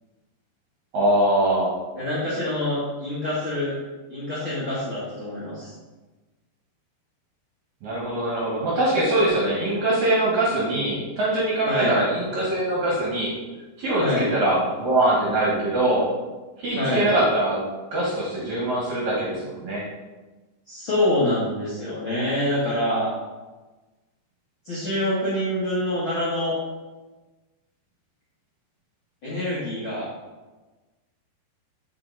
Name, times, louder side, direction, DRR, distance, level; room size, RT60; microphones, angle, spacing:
voice 1, 0.9-1.7 7.8-13.3 13.8-16.1 16.6-17.6 17.9-19.8, right 1 dB, 55° right, -5 dB, 2.4 m, -23 dB
voice 2, 1.9-3.7 4.1-5.7 11.7-12.0 14.0-14.2 16.8-17.1 20.7-23.1 24.6-26.5 29.2-30.1, left 1 dB, 50° left, -9 dB, 1.4 m, -25 dB
7.5 x 5.8 x 4.0 m, 1.2 s
omnidirectional pair, 4.8 m